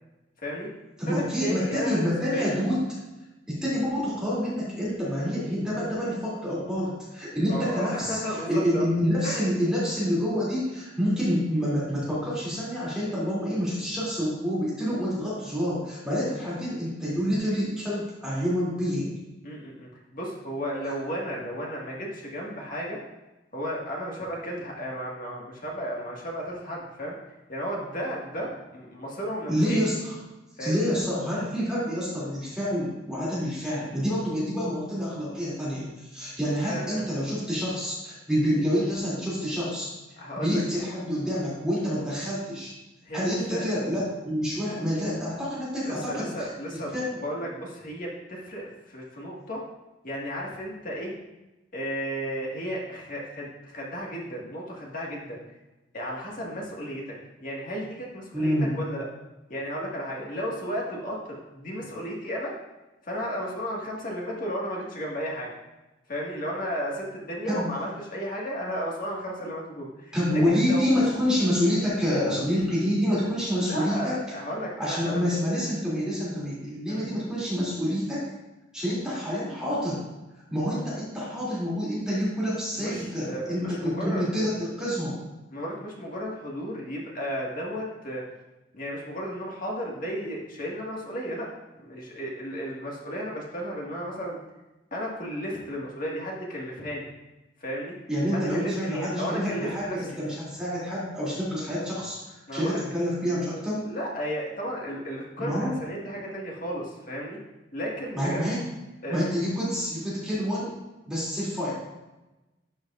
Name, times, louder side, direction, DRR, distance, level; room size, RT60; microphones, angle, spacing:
voice 1, 0.4-0.7 1.1-2.6 7.5-8.9 9.2-9.4 19.4-23.0 23.5-27.2 27.5-29.8 30.6-30.8 36.6-37.0 40.2-40.6 43.0-43.2 43.5-43.6 45.8-46.9 47.2-49.6 50.0-51.1 51.7-55.4 55.9-57.1 57.4-59.0 59.5-62.5 63.0-65.5 66.1-71.0 73.6-75.3 76.9-77.1 82.8-84.5 85.5-88.2 88.7-91.5 91.7-94.4 94.9-97.1 97.6-98.0 98.3-100.1 102.5-102.8 103.8-107.4 107.7-108.4 109.0-109.2, equal, 45° left, -3 dB, 1.8 m, -34 dB
voice 2, 1.0-2.8 3.5-19.2 29.5-30.2 30.6-39.9 40.4-42.7 43.1-47.2 58.3-58.8 67.4-67.7 70.1-74.2 74.8-78.3 78.7-80.0 80.5-85.2 98.1-102.2 102.5-103.9 105.4-105.7 108.1-108.7 109.1-110.8 111.1-111.7, equal, 5° right, -9 dB, 2.8 m, -27 dB
11.5 x 6.3 x 2.5 m, 1.0 s
head